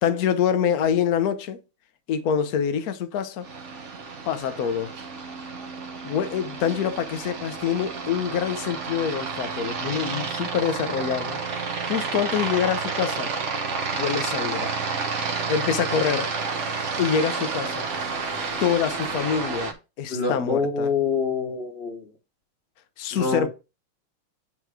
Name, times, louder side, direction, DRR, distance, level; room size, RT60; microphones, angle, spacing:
voice 1, 0.0-1.6 2.1-3.5 4.3-4.9 6.0-11.4 11.9-13.3 13.9-14.7 15.5-16.3 17.0-17.9 18.6-20.9 23.0-23.5, left 8 dB, 60° left, 1.1 m, -25 dB
Aircraft, 3.4-19.7, right 4 dB, 45° right, 1.0 m, -30 dB
voice 2, 20.1-22.0 23.1-23.5, left 5 dB, 35° left, 1.2 m, -26 dB
9.1 x 3.2 x 4.8 m
omnidirectional pair, 2.3 m